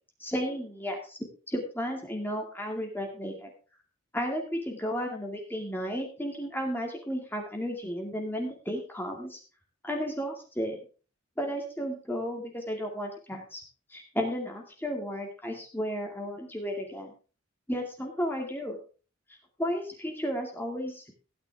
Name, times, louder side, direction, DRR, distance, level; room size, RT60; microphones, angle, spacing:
voice 1, 0.2-1.2 1.5-3.5 4.1-9.4 9.8-10.8 11.4-13.6 13.9-17.1 17.7-18.8 19.6-21.0, equal, 10° left, 1 dB, 2.2 m, -33 dB
16.0 x 9.9 x 3.5 m, 0.37 s
head